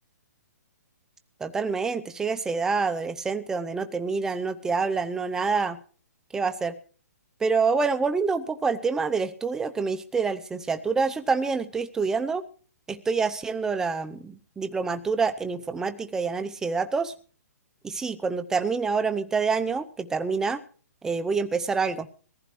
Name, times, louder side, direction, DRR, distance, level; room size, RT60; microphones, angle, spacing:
voice 1, 1.4-5.8 6.3-6.7 7.4-12.4 12.9-17.1 17.8-20.6 21.0-22.1, right 4 dB, 5° right, 9 dB, 0.7 m, -27 dB
22.0 x 15.0 x 3.2 m, 0.41 s
hypercardioid pair, 160°, 9 cm